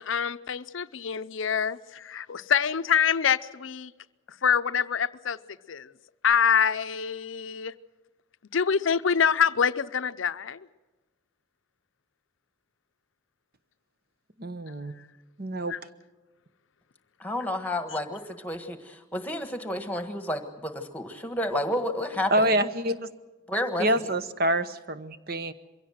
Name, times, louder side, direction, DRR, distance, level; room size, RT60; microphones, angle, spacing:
voice 1, 0.0-3.9 4.4-5.4 5.7-5.9 6.2-7.7 8.5-10.7 14.7-14.8 15.7-15.8, left 7 dB, 80° left, 13 dB, 0.6 m, -25 dB
voice 2, 14.4-14.9 15.4-15.7 22.3-23.0 23.8-25.5, right 1 dB, 50° right, 12 dB, 1.0 m, -26 dB
voice 3, 17.2-22.5 23.5-23.9, left 1 dB, 10° left, 8 dB, 1.4 m, -31 dB
23.0 x 16.5 x 7.8 m, 1.2 s
head